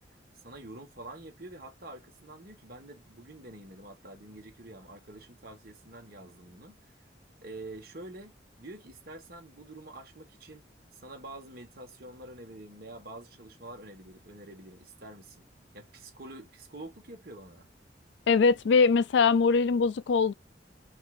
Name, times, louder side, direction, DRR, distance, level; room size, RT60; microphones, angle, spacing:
voice 1, 0.4-6.8 7.4-8.3 8.6-10.6 10.9-15.4 15.7-17.7, right 2 dB, 55° right, 1.6 m, -47 dB
voice 2, 18.3-20.3, left 5 dB, 75° left, 0.4 m, -22 dB
5.6 x 2.6 x 2.6 m
head